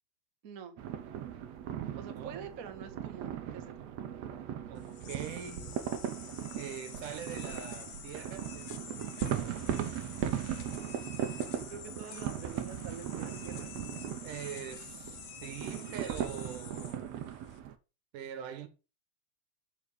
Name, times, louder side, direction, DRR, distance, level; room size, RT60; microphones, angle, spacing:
voice 1, 0.4-0.8 2.0-4.2 11.5-13.9 15.8-15.9, right 6 dB, 45° right, 1.2 m, -47 dB
sound 1, 0.8-17.7, right 10 dB, 65° right, 1.9 m, -38 dB
voice 2, 1.9-2.5 4.0-4.1 4.7-5.8 6.5-8.8 14.2-17.1 18.1-18.7, right 9 dB, 85° right, 2.8 m, -43 dB
sound 2, 4.8-17.6, left 8 dB, 75° left, 2.8 m, -48 dB
7.6 x 5.4 x 6.5 m
omnidirectional pair, 3.6 m